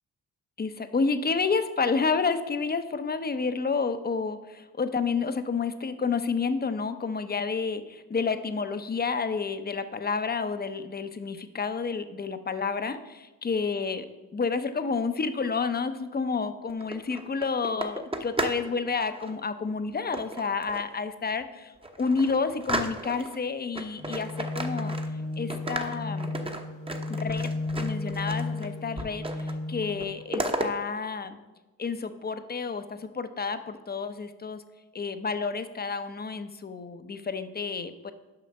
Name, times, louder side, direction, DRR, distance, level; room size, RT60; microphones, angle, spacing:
voice 1, 0.6-14.1 14.3-21.7 22.0-24.9 25.4-26.3 27.1-31.4 31.8-34.6 34.9-38.1, left 5 dB, 25° left, 10 dB, 0.7 m, -30 dB
sound 1, 16.7-18.7 18.9-19.3 20.1-21.0 21.4-21.5 21.8-23.4 23.8-25.3 25.5-28.7 29.0-29.6 29.8-30.7, right 1 dB, 15° right, 0.9 m, -34 dB
sound 2, 24.0-30.0, left 2 dB, 75° left, 2.2 m, -33 dB
6.8 x 5.6 x 5.3 m, 1.1 s
supercardioid pair, 65°, 37 cm